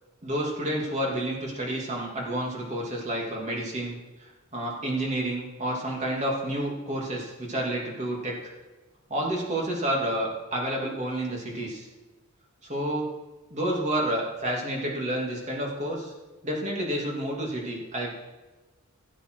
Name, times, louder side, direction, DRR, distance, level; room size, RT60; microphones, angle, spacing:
voice 1, 0.2-8.4 9.1-11.9 12.6-13.1 13.5-16.1 16.4-18.1, right 1 dB, 30° right, -2 dB, 2.8 m, -30 dB
16.5 x 8.0 x 4.8 m, 1.2 s
head